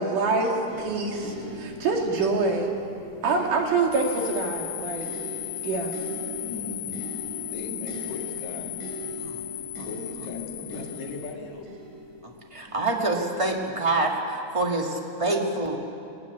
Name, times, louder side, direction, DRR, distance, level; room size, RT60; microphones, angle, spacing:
voice 1, 0.0-2.7 3.2-5.1 5.6-5.9, right 3 dB, 85° right, 1 dB, 3.9 m, -25 dB
sound 1, 0.7-13.8 14.6-14.7, equal, 70° right, 4.7 m, -41 dB
sound 2, 3.9-11.3, left 15 dB, 90° left, 2.2 m, -36 dB
voice 2, 6.4-7.1 7.5-8.8 9.8-11.7, left 4 dB, 65° left, 0 dB, 3.3 m, -37 dB
voice 3, 12.2-15.8, right 2 dB, 15° right, 0 dB, 1.4 m, -26 dB
19.5 x 16.0 x 10.0 m, 2.5 s
omnidirectional pair, 3.6 m